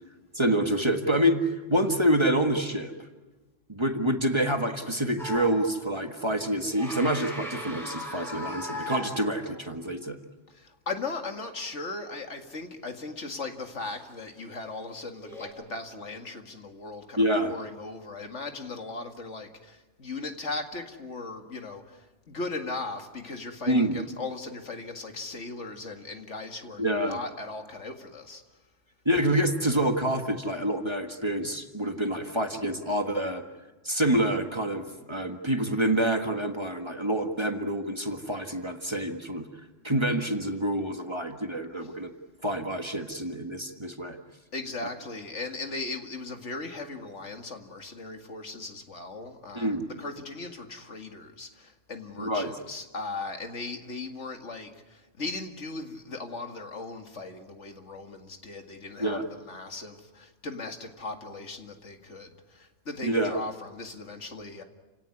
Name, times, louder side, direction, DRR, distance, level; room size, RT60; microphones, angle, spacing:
voice 1, 0.3-2.9 3.7-10.2 17.2-17.5 23.7-24.0 26.8-27.2 29.0-33.4 33.8-39.5 39.8-42.1 42.4-44.2 49.5-49.9 52.2-52.5 59.0-59.3 63.0-63.4, right 1 dB, 25° right, 5 dB, 1.6 m, -27 dB
sound 1, 5.2-5.8 6.5-9.6 13.8-14.0 15.2-15.5, left 1 dB, ahead, 7.8 m, -38 dB
voice 2, 10.5-28.4 44.5-64.6, left 3 dB, 70° left, 5 dB, 2.4 m, -38 dB
29.0 x 18.0 x 9.7 m, 1.2 s
omnidirectional pair, 1.3 m